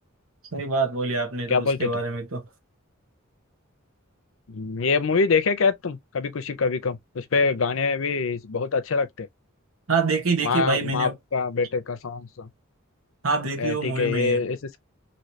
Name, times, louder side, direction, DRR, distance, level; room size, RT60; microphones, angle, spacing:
voice 1, 0.5-2.4 9.9-11.1 13.2-14.4, right 3 dB, 85° right, 1.1 m, -26 dB
voice 2, 1.5-1.9 4.5-9.3 10.4-12.5 13.6-14.8, left 4 dB, 70° left, 0.6 m, -25 dB
3.2 x 2.8 x 2.8 m
head